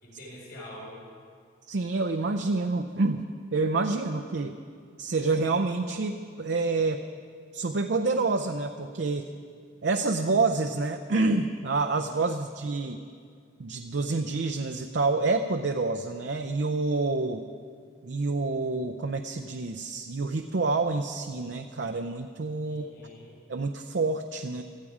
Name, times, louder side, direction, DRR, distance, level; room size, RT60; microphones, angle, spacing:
voice 1, 0.0-1.1 12.1-12.5 22.6-23.4, left 1 dB, 55° left, -4 dB, 3.9 m, -46 dB
voice 2, 1.7-3.3 3.5-4.6 5.0-7.0 7.5-9.3 9.8-13.0 13.6-17.4 18.0-22.9 23.5-24.6, right 3 dB, 65° right, 6 dB, 0.5 m, -28 dB
16.5 x 14.0 x 4.9 m, 2.1 s
head